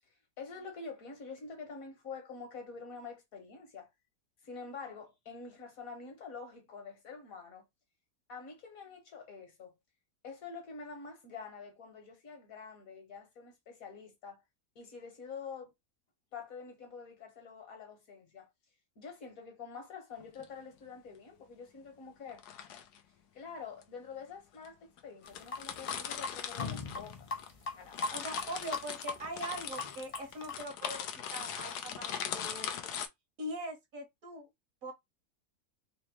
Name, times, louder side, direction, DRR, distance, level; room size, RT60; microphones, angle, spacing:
voice 1, 0.4-3.9 4.4-7.7 8.3-9.7 10.2-14.4 14.7-15.7 16.3-18.5 19.0-22.4 23.3-27.3 27.7-28.2, left 5 dB, 65° left, 1.7 m, -47 dB
sound 1, 20.2-20.5 22.3-23.0 23.8-23.9 24.6-24.7 25.0-25.1 25.3-27.5 27.8-33.1, left 8 dB, 85° left, 1.2 m, -40 dB
sound 2, 25.2-30.6, left 3 dB, 40° left, 0.5 m, -38 dB
voice 2, 28.1-32.7 33.4-34.5 34.8-34.9, right 1 dB, 60° right, 1.7 m, -42 dB
4.3 x 2.9 x 3.0 m
omnidirectional pair, 1.6 m